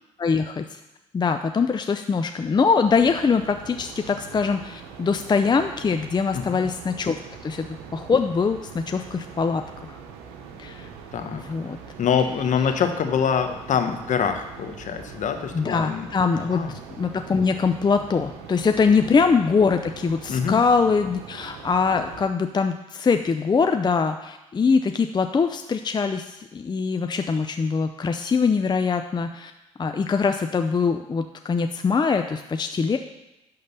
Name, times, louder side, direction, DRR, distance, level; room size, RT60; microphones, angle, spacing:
voice 1, 0.2-0.8 1.1-7.2 7.4-7.7 7.9-10.0 10.6-10.9 11.4-11.8 15.5-16.6 17.0-29.5 29.8-33.0, left 5 dB, 30° left, 7 dB, 0.6 m, -23 dB
sound 1, 2.8-22.3, right 6 dB, 85° right, 0.9 m, -42 dB
voice 2, 11.1-11.4 12.0-16.7 19.0-19.1 20.3-20.6, left 7 dB, 60° left, 7 dB, 1.1 m, -25 dB
11.0 x 3.8 x 6.8 m, 0.94 s
supercardioid pair, 60°, 15 cm